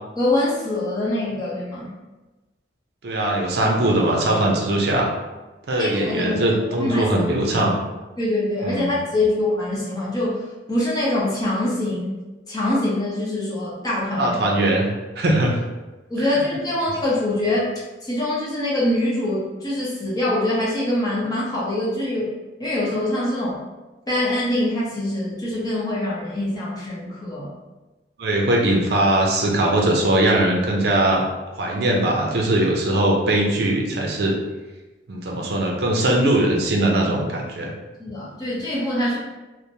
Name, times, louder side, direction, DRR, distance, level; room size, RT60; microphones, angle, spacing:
voice 1, 0.2-1.9 5.7-7.0 7.5-7.6 8.2-10.4 10.7-12.2 12.5-14.4 16.1-17.7 18.0-22.3 22.6-23.6 24.1-27.5 38.0-39.2, left 1 dB, 20° left, -7 dB, 0.7 m, -24 dB
voice 2, 3.0-5.1 5.7-7.8 8.6-8.9 14.2-14.9 15.2-15.6 16.2-16.4 28.2-31.3 31.6-34.4 35.1-37.7, right 1 dB, 60° right, -1 dB, 0.5 m, -20 dB
3.0 x 2.1 x 2.6 m, 1.1 s
head